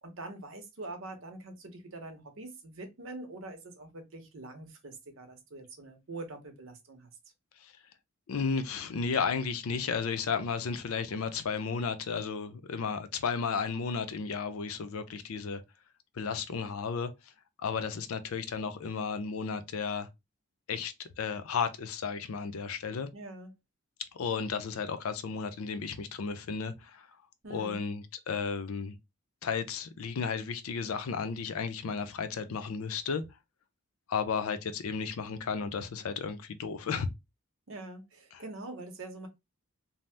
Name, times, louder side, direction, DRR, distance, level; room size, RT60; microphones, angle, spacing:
voice 1, 0.0-7.1 23.1-23.5 27.4-27.8 37.7-39.3, right 2 dB, 65° right, 0.7 m, -44 dB
voice 2, 8.3-15.6 16.2-17.1 17.6-20.1 20.7-23.1 24.1-27.1 27.5-29.0 29.4-33.2 34.1-37.1 38.3-38.4, left 5 dB, 85° left, 0.5 m, -33 dB
2.7 x 2.0 x 3.2 m
head